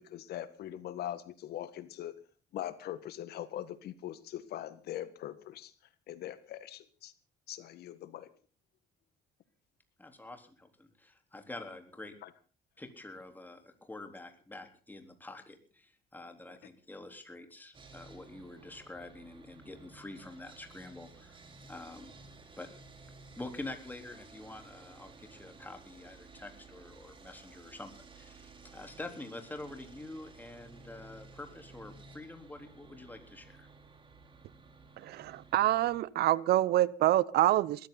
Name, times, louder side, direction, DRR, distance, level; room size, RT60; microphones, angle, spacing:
voice 1, 0.0-2.1 2.5-5.7 6.1-7.1 7.5-8.3 12.2-12.3, left 12 dB, 70° left, 13 dB, 1.6 m, -41 dB
voice 2, 10.0-12.1 12.8-21.4 21.7-22.2 22.6-22.7 23.3-33.7, left 2 dB, 10° left, 6 dB, 3.8 m, -47 dB
Sawing, 17.7-36.0, right 4 dB, 30° right, 3.5 m, -55 dB
voice 3, 35.0-37.9, right 14 dB, 70° right, 21 dB, 0.8 m, -26 dB
20.5 x 14.5 x 4.0 m, 0.39 s
cardioid pair, 110°, 17 cm